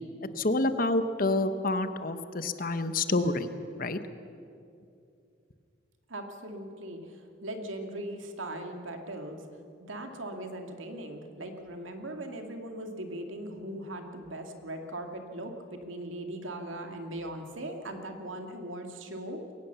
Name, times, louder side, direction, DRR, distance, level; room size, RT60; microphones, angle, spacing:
voice 1, 0.4-3.5 3.8-4.0, left 2 dB, 45° left, 10 dB, 1.0 m, -28 dB
voice 2, 6.1-9.4 9.8-19.4, right 1 dB, 80° right, 5 dB, 2.3 m, -39 dB
22.5 x 18.5 x 7.0 m, 2.5 s
head